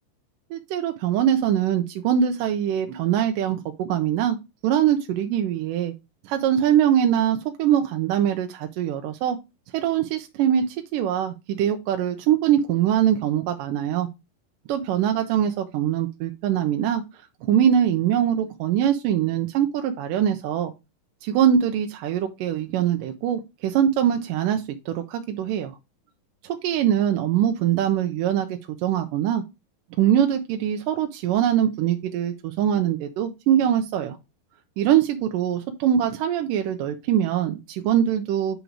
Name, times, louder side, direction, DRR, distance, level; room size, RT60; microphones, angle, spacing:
voice 1, 0.5-4.4 4.6-5.9 6.3-9.4 9.7-14.1 14.7-17.0 17.4-20.7 21.2-25.7 26.4-29.4 30.0-34.2 34.8-38.6, right 10 dB, 80° right, 5 dB, 2.3 m, -23 dB
8.1 x 4.0 x 4.5 m, 0.24 s
omnidirectional pair, 3.8 m